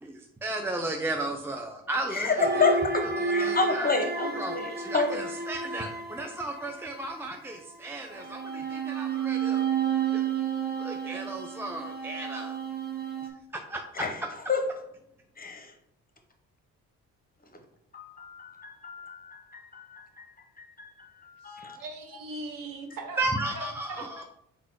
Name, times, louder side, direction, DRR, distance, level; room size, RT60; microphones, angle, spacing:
voice 1, 0.0-2.8 3.2-3.9 4.3-9.7 10.1-10.2 10.8-12.6 13.5-14.0 23.2-24.2, right 2 dB, 5° right, 0.4 m, -34 dB
sound 1, 2.4-7.1 8.0-13.3, right 6 dB, 25° right, 0.9 m, -31 dB
voice 2, 2.6-5.2 14.0-14.1 14.5-14.6 15.4-15.7 17.9-20.2 20.8-21.8, left 4 dB, 25° left, 0.8 m, -30 dB
voice 3, 21.4-23.2 23.5-24.2, right 3 dB, 55° right, 1.0 m, -40 dB
3.8 x 2.3 x 4.6 m
hypercardioid pair, 45°, 39 cm